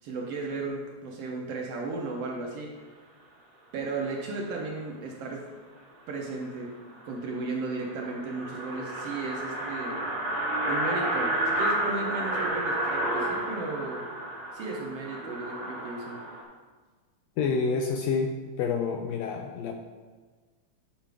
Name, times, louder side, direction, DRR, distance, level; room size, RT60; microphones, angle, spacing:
voice 1, 0.0-2.7 3.7-5.4 6.1-6.7 7.0-10.0 10.7-14.0 14.5-16.2, right 3 dB, 70° right, 0 dB, 1.6 m, -35 dB
sound 1, 6.5-6.6 7.0-7.1 7.4-7.5 7.7-16.4, right 1 dB, 45° right, 2.4 m, -31 dB
voice 2, 17.4-19.7, left 5 dB, 80° left, 4 dB, 1.6 m, -28 dB
10.5 x 5.3 x 3.4 m, 1.4 s
omnidirectional pair, 3.3 m